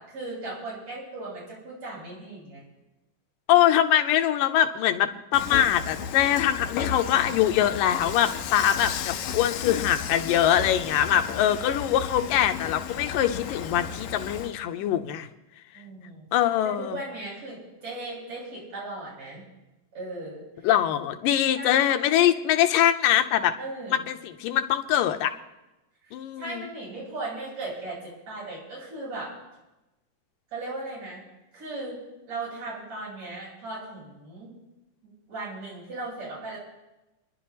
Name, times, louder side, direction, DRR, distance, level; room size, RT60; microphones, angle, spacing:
voice 1, 0.0-2.6 15.7-16.3 16.6-19.4 19.9-20.4 21.5-22.1 23.6-24.0 26.0-29.3 30.5-31.2 31.5-32.0 32.3-34.5 35.0-36.6, right 2 dB, 55° right, -6 dB, 8.4 m, -37 dB
voice 2, 3.5-15.3 16.3-17.0 20.6-23.6 24.1-25.3 26.1-26.7, left 11 dB, 90° left, 8 dB, 2.3 m, -23 dB
Dishes pots and pans / Frying (food), 5.3-14.5, left 8 dB, 75° left, 1.9 m, -34 dB
30.0 x 11.0 x 2.9 m, 1.0 s
omnidirectional pair, 3.8 m